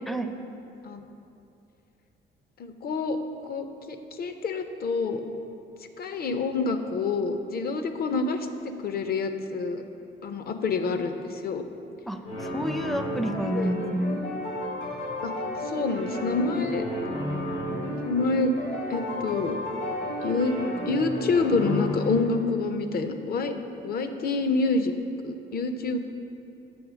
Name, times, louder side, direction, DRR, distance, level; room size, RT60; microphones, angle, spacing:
voice 1, 0.1-0.4 12.1-14.2, right 1 dB, ahead, 7 dB, 0.4 m, -29 dB
voice 2, 2.6-3.2 3.4-5.2 6.0-9.8 10.2-11.6 13.5-13.7 15.2-15.3 15.7-16.8 18.0-18.5 18.9-19.6 20.2-20.5 20.9-23.5 23.8-24.9 25.2-26.0, left 3 dB, 50° left, 8 dB, 0.5 m, -27 dB
sound 1, 12.3-22.1, left 1 dB, 80° left, 1.7 m, -32 dB
7.8 x 3.4 x 6.1 m, 2.7 s
cardioid pair, 90°, 20 cm